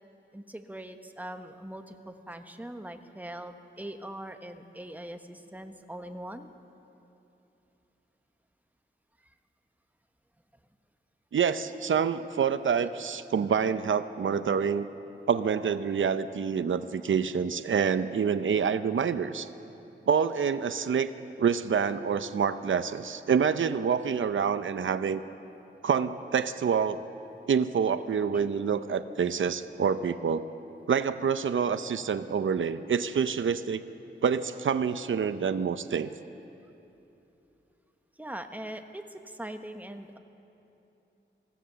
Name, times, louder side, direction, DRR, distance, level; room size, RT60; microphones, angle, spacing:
voice 1, 0.3-6.5 9.2-9.3 28.3-28.5 38.2-40.2, right 1 dB, 10° right, 6 dB, 1.2 m, -41 dB
voice 2, 11.3-14.9 15.3-19.5 20.1-21.1 21.4-25.2 25.8-27.0 27.5-30.5 30.9-33.8 34.2-36.1, right 6 dB, 85° right, 11 dB, 0.6 m, -27 dB
24.0 x 16.0 x 6.9 m, 2.9 s
wide cardioid pair, 80°, 20 cm